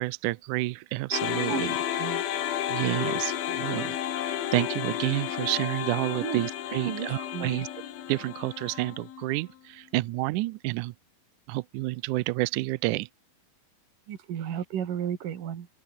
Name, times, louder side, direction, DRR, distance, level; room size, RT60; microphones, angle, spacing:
voice 1, 0.0-1.7 2.7-3.9 4.2-7.7 8.1-10.9 11.5-13.1, right 20 dB, 85° right, 1.8 m, -29 dB
sound 1, 1.1-9.4, left 11 dB, 85° left, 3.8 m, -32 dB
voice 2, 6.9-7.5 14.1-15.7, right 9 dB, 65° right, 3.7 m, -33 dB
open air
omnidirectional pair, 4.2 m